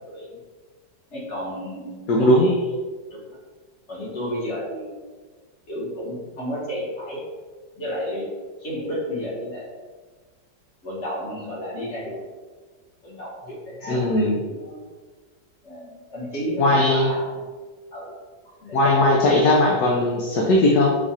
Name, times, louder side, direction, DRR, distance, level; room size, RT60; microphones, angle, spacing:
voice 1, 0.1-0.4 1.1-2.6 3.1-3.4 3.9-5.0 5.7-7.2 7.8-8.3 8.6-9.6 10.8-12.3 13.0-14.9 15.6-17.3 17.9-18.1 18.4-19.4, equal, 45° left, -5 dB, 1.3 m, -32 dB
voice 2, 2.1-2.5 13.9-14.4 16.6-17.1 18.7-21.0, left 1 dB, 70° left, -1 dB, 1.0 m, -18 dB
4.7 x 2.4 x 4.1 m, 1.4 s
omnidirectional pair, 1.9 m